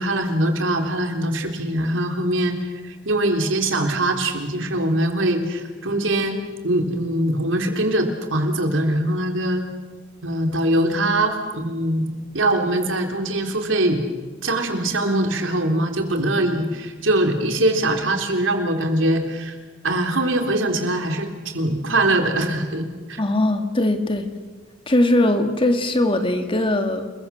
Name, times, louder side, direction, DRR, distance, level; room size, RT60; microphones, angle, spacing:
voice 1, 0.0-2.6 2.8-9.7 10.2-12.1 12.3-14.0 14.4-19.6 19.8-21.3 21.5-22.8 23.1-23.2, right 1 dB, 80° right, 4 dB, 3.7 m, -22 dB
voice 2, 23.2-24.3 24.9-27.1, left 1 dB, 25° left, 6 dB, 2.2 m, -20 dB
29.0 x 22.0 x 7.2 m, 1.3 s
head